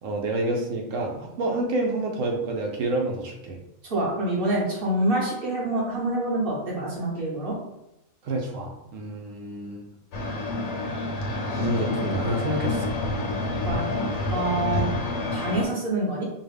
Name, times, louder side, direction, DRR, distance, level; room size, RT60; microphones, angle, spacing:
voice 1, 0.0-3.6 8.2-9.8 11.5-12.9, right 1 dB, 70° right, 1 dB, 1.0 m, -28 dB
voice 2, 3.9-7.6 13.6-13.8 14.3-14.9 15.3-16.2, right 1 dB, 40° right, -6 dB, 1.4 m, -26 dB
sound 1, 10.1-15.6, left 2 dB, 85° left, 1.2 m, -28 dB
5.4 x 2.1 x 3.4 m, 0.87 s
omnidirectional pair, 1.5 m